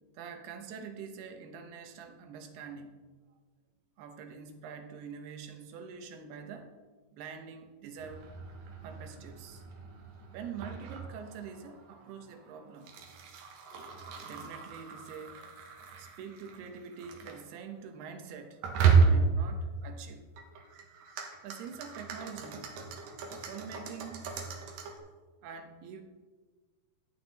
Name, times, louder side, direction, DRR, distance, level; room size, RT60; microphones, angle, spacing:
voice 1, 0.1-3.0 4.0-6.7 7.1-8.2 8.7-9.6 10.3-12.9 14.0-15.5 16.0-18.6 19.0-20.3 21.4-22.8 23.3-24.3 25.4-26.0, right 6 dB, 85° right, 6 dB, 3.0 m, -45 dB
sound 1, 8.0-17.4 18.6-19.5 20.4-25.0, right 5 dB, 70° right, 2.7 m, -33 dB
13.5 x 8.7 x 4.1 m, 1.4 s
omnidirectional pair, 4.5 m